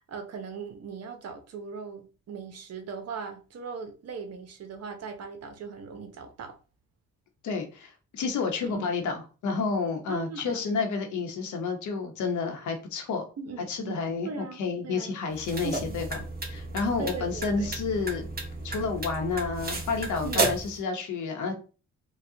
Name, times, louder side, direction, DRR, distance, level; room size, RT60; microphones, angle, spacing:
voice 1, 0.1-6.6 8.6-8.9 10.1-10.8 13.4-15.2 15.6-16.0 17.0-17.7 20.2-20.5, right 5 dB, 55° right, 0.9 m, -39 dB
voice 2, 7.4-13.2 13.7-14.3 14.6-16.2 16.5-18.3 18.6-21.5, left 4 dB, 75° left, 0.9 m, -30 dB
sound 1, 15.3-20.8, right 3 dB, 30° right, 1.1 m, -33 dB
4.7 x 2.3 x 2.8 m
cardioid pair, 90°, 30 cm